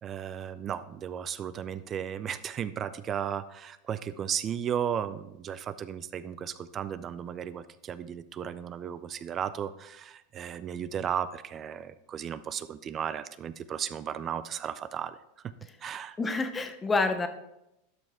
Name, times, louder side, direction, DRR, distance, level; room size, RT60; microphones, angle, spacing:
voice 1, 0.0-15.2 15.4-15.5 15.8-16.2, right 8 dB, 25° right, 14 dB, 0.3 m, -35 dB
voice 2, 16.2-17.3, left 3 dB, 15° left, 8 dB, 0.7 m, -27 dB
12.0 x 5.4 x 3.6 m, 0.88 s
supercardioid pair, 150°, 0 cm